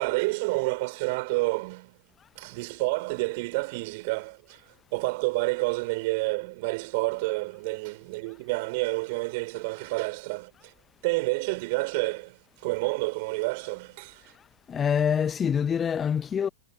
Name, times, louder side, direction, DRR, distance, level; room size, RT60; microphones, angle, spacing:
voice 1, 0.0-1.9 2.4-4.6 4.9-10.7 11.0-14.2, right 25 dB, 50° right, 3.5 m, -29 dB
voice 2, 14.7-16.5, left 7 dB, 20° left, 0.8 m, -25 dB
figure-of-eight pair, 90°, 0 cm